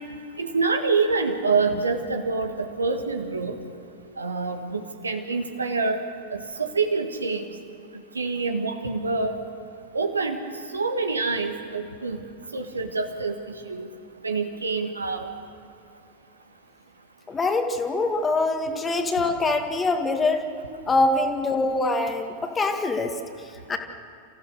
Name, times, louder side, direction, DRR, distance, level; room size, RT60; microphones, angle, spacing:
voice 1, 0.4-3.6 4.2-6.0 6.3-7.5 8.1-9.4 9.9-10.4 10.7-12.2 12.5-13.4 13.7-13.9 14.2-15.3, right 4 dB, 75° right, 6 dB, 1.6 m, -26 dB
voice 2, 17.3-20.5 20.9-23.8, left 3 dB, 15° left, 5 dB, 1.8 m, -24 dB
29.5 x 15.5 x 6.5 m, 2.6 s
figure-of-eight pair, 90°, 0 cm